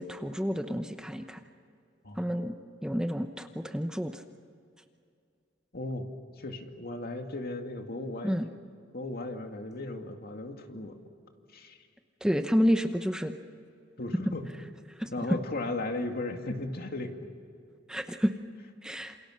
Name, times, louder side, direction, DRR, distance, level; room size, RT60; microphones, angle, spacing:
voice 1, 0.0-1.4 2.2-2.5 2.8-4.2 8.2-8.5 12.2-13.3 15.0-15.3 17.9-18.3 18.8-19.2, equal, 5° right, 7 dB, 0.9 m, -29 dB
voice 2, 5.7-6.0 6.4-8.4 8.9-11.0 11.5-11.8 14.0-14.5 15.1-17.2, left 2 dB, 55° left, 4 dB, 2.3 m, -36 dB
28.0 x 28.0 x 6.4 m, 2.4 s
head